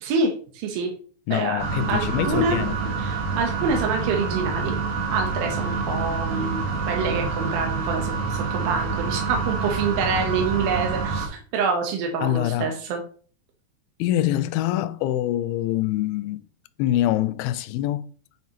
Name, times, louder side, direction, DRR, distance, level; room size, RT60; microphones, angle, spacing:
voice 1, 0.0-0.9 1.3-2.6 3.0-4.7 5.1-13.0, right 4 dB, 75° right, 2.8 m, -26 dB
voice 2, 1.3-2.9 12.2-12.8 14.0-16.4 16.8-18.0, left 13 dB, 85° left, 2.4 m, -25 dB
sound 1, 1.6-11.3, right 4 dB, 60° right, 2.4 m, -27 dB
9.3 x 5.5 x 2.9 m
omnidirectional pair, 4.4 m